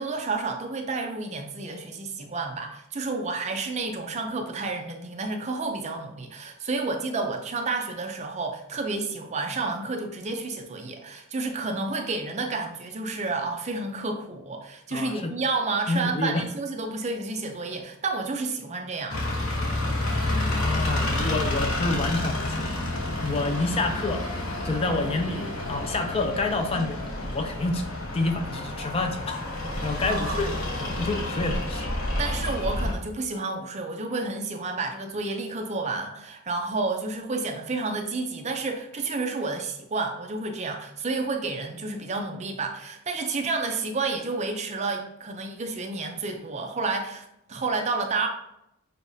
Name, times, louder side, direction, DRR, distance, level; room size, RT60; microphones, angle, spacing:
voice 1, 0.0-19.6 30.0-30.4 32.2-48.3, right 3 dB, 35° right, 4 dB, 0.5 m, -30 dB
voice 2, 14.9-15.3 15.9-16.4 20.5-22.7 23.2-24.2 24.6-27.8 28.1-29.4 29.8-31.9, left 2 dB, 25° left, 5 dB, 0.4 m, -28 dB
sound 1, 19.1-32.9, left 1 dB, 85° left, 1.0 m, -29 dB
6.5 x 2.4 x 2.6 m, 0.80 s
head